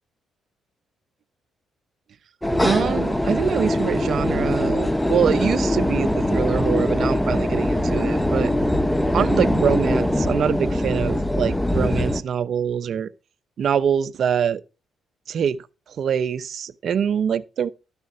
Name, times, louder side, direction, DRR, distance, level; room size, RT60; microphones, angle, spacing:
sound 1, 2.4-12.2, left 1 dB, 5° left, 0.9 m, -22 dB
voice 1, 2.6-8.5 9.1-13.1 13.6-14.6 15.3-15.6 15.9-17.7, right 8 dB, 60° right, 0.8 m, -24 dB
12.0 x 7.0 x 4.7 m
cardioid pair, 90°, 0 cm